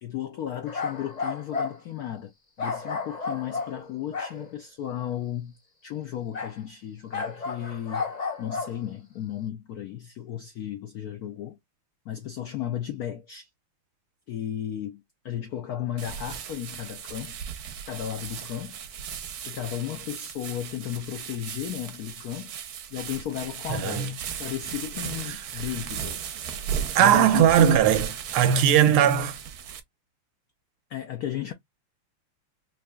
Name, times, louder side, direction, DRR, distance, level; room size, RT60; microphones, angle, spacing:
voice 1, 0.0-5.6 5.8-8.1 8.4-11.6 12.1-13.5 14.3-17.4 17.9-18.8 19.5-22.5 22.9-26.3 27.0-27.8 28.7-29.0 30.9-31.5, left 11 dB, 85° left, 0.8 m, -34 dB
sound 1, 0.7-1.8 2.6-4.5 6.3-6.6 7.1-8.8, left 4 dB, 60° left, 0.4 m, -32 dB
sound 2, 16.0-29.8, right 8 dB, 65° right, 0.9 m, -36 dB
voice 2, 23.7-24.1 25.3-25.4 26.9-29.3, right 10 dB, 90° right, 1.5 m, -19 dB
4.7 x 2.9 x 2.2 m
omnidirectional pair, 2.3 m